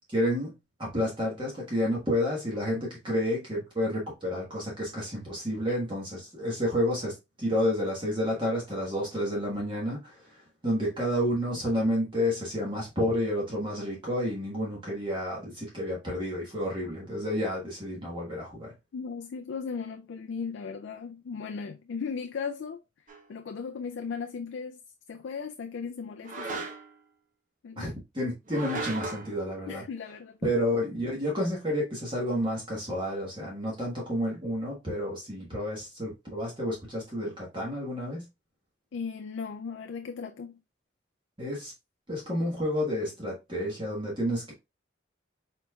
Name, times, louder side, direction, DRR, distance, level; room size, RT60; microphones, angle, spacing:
voice 1, 0.1-0.5 0.8-18.7 27.8-29.8 30.4-38.3 41.4-41.7 42.1-44.5, equal, 25° right, 1.3 m, -30 dB
voice 2, 18.9-22.8 23.3-24.8 25.1-26.7 27.6-27.9 29.7-30.5 38.9-40.6, left 5 dB, 75° left, 0.4 m, -37 dB
sound 1, 23.1-23.3 26.2-27.0 28.5-29.3, right 3 dB, 45° right, 0.8 m, -36 dB
4.4 x 4.3 x 2.3 m
head